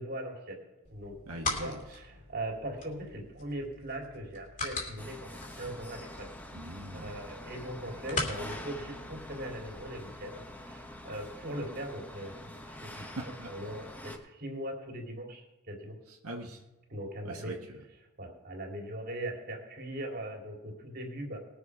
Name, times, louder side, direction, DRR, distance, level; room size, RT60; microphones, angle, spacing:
voice 1, 0.0-1.2 1.6-6.4 6.9-13.1 13.5-16.0 16.9-17.5 18.2-21.4, right 1 dB, 45° right, 2 dB, 3.1 m, -40 dB
sound 1, 0.8-9.8, left 3 dB, 35° left, 2.6 m, -41 dB
voice 2, 1.3-2.0 6.5-7.2 13.2-13.5 16.1-16.6 17.2-17.8, right 1 dB, 85° right, 0 dB, 1.6 m, -42 dB
sound 2, 5.0-14.2, left 1 dB, 10° left, 1.3 m, -46 dB
20.5 x 7.0 x 4.9 m, 1.1 s
head